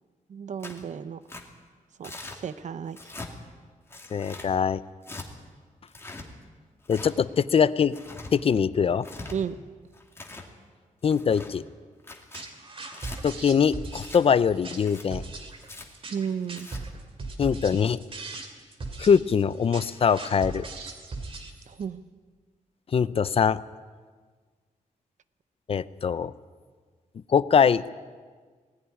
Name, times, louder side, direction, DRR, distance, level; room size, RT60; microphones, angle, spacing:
voice 1, 0.3-1.2 2.0-2.1 2.4-3.0 9.3-9.6 16.1-16.7 21.7-22.0, right 7 dB, 60° right, 14 dB, 0.7 m, -33 dB
Tearing, 0.6-0.8 1.3-1.4 2.0-2.4 2.9-3.3 3.9-4.5 5.0-5.3 5.9-6.3 6.8-7.1 7.8-8.3 8.9-9.4 9.9-10.5 11.0-11.5 12.0-12.4 12.9-13.2 13.9-14.2 14.8-15.0 15.6-15.9 16.4-16.8, left 2 dB, 15° left, 2.2 m, -42 dB
voice 2, 4.1-4.8 6.9-7.9 8.3-9.1 11.0-11.6 13.2-15.2 17.4-18.0 19.0-20.6 22.9-23.6 25.7-26.3 27.3-27.9, left 7 dB, 45° left, 16 dB, 0.5 m, -22 dB
sound 1, 12.3-21.9, right 3 dB, 40° right, 2.5 m, -39 dB
19.5 x 16.0 x 9.8 m, 1.5 s
wide cardioid pair, 175°, 14 cm